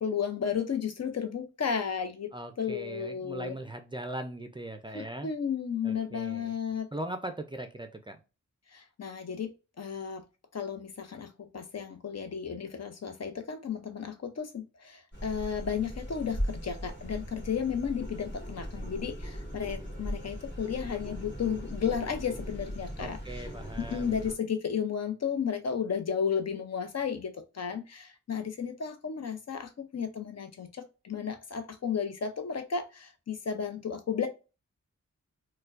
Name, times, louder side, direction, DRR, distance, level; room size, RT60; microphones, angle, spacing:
voice 1, 0.0-2.3 2.6-3.5 4.9-6.9 8.7-10.2 10.5-23.5 23.9-34.3, left 7 dB, 55° left, 7 dB, 0.6 m, -33 dB
voice 2, 2.3-5.3 5.8-6.5 6.9-8.2 23.0-24.1, right 1 dB, 15° right, 6 dB, 0.4 m, -39 dB
sound 1, 15.1-24.3, equal, 35° left, 1.8 m, -39 dB
4.3 x 2.2 x 2.5 m, 0.30 s
wide cardioid pair, 95°, 31 cm